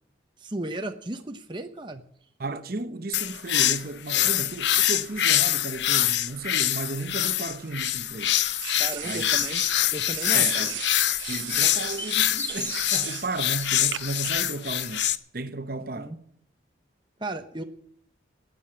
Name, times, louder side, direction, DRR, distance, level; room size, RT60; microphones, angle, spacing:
voice 1, 0.4-2.0 4.1-4.3 8.8-9.6 9.9-10.7 15.9-16.2 17.2-17.6, right 1 dB, 25° right, 0.9 m, -35 dB
voice 2, 2.4-8.4 9.0-9.3 10.3-10.7 11.3-15.1 15.3-16.1, right 3 dB, 50° right, 0.9 m, -34 dB
sound 1, 3.1-15.2, left 12 dB, 65° left, 0.6 m, -25 dB
sound 2, 7.0-8.0 8.6-9.8 10.1-13.3 13.9-14.3, right 14 dB, 80° right, 0.5 m, -37 dB
sound 3, 11.1-13.7 14.1-14.2, left 2 dB, 10° left, 1.3 m, -37 dB
12.5 x 9.4 x 8.7 m
head